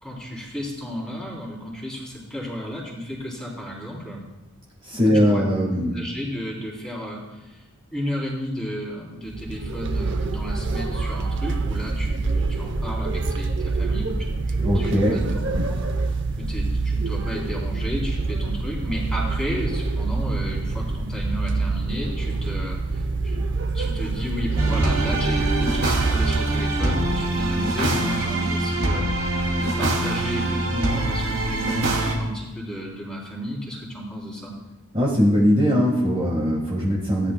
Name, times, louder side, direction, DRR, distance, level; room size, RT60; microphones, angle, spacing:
voice 1, 0.0-4.2 5.0-7.6 7.9-15.8 16.4-23.4 23.7-34.5, equal, 5° left, -5 dB, 3.4 m, -33 dB
voice 2, 4.8-6.0 14.6-15.2 34.9-37.3, equal, 25° right, -5 dB, 1.7 m, -20 dB
sound 1, 9.3-27.5, right 3 dB, 55° right, 0.7 m, -26 dB
sound 2, 24.6-32.1, right 2 dB, 70° right, 2.5 m, -24 dB
18.0 x 10.5 x 2.2 m, 1.1 s
head